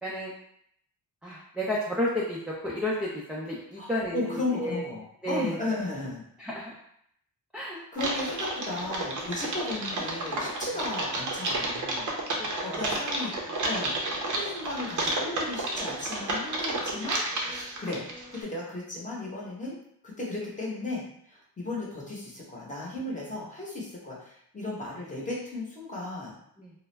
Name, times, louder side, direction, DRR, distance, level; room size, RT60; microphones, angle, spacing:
voice 1, 0.0-0.3 1.2-2.4 2.6-4.2 4.6-4.8 5.2-5.5 6.4-6.8 7.5-7.8 12.4-12.9 26.6-26.7, left 1 dB, 5° right, -6 dB, 0.3 m, -31 dB
voice 2, 3.8-6.2 7.9-12.1 12.6-18.0 18.3-19.8 20.0-26.4, left 2 dB, 20° left, -5 dB, 0.9 m, -35 dB
Typing, 7.9-18.4, right 2 dB, 55° right, 0.6 m, -31 dB
2.3 x 2.0 x 3.2 m, 0.71 s
cardioid pair, 105°, 37 cm